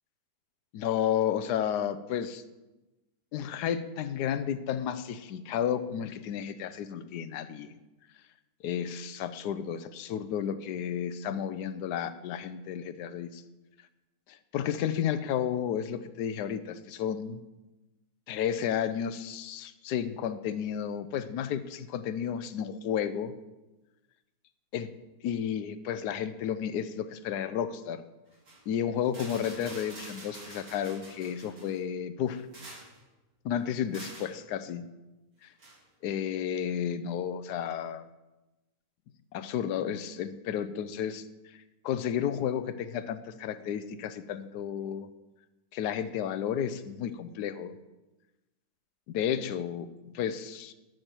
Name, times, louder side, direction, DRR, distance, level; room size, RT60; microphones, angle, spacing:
voice 1, 0.7-2.4 3.3-7.8 8.6-13.4 14.3-17.4 18.3-23.3 24.7-24.9 25.2-28.0 28.7-32.4 33.4-34.9 35.4-35.5 36.0-38.1 39.3-41.6 41.8-45.1 45.7-47.7 49.1-50.7, left 9 dB, 75° left, 12 dB, 1.2 m, -32 dB
sound 1, 28.3-28.6 29.1-31.8 32.3-33.0 33.9-34.3 35.6-35.8, right 2 dB, 80° right, 3.8 m, -46 dB
12.5 x 6.4 x 4.4 m, 1.1 s
omnidirectional pair, 1.8 m